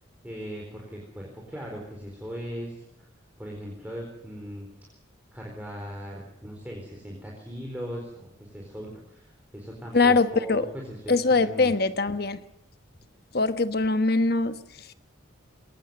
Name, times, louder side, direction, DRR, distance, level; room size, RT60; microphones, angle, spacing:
voice 1, 0.2-2.8 3.4-4.7 5.3-11.7, equal, 10° right, -1 dB, 4.2 m, -39 dB
voice 2, 9.9-10.7 11.1-12.4 13.3-14.9, left 3 dB, 50° left, 11 dB, 1.2 m, -23 dB
22.0 x 18.5 x 8.0 m, 0.79 s
head